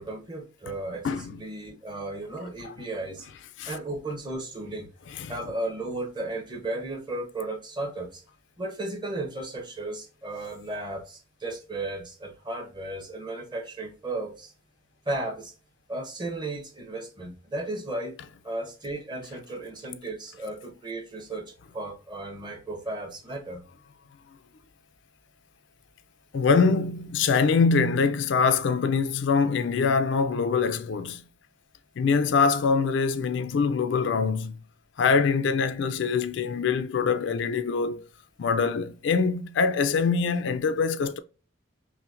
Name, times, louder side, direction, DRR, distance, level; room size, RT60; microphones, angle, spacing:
voice 1, 0.0-3.3 3.6-4.9 5.3-8.2 8.6-14.5 15.1-15.5 15.9-18.2 18.4-23.6, right 2 dB, 20° right, 0.7 m, -35 dB
voice 2, 1.0-1.4 2.6-2.7 3.6-3.8 5.1-5.3 26.3-31.2 32.0-34.6 35.0-38.1 38.4-41.2, left 5 dB, 60° left, 0.3 m, -24 dB
5.6 x 2.1 x 2.4 m
head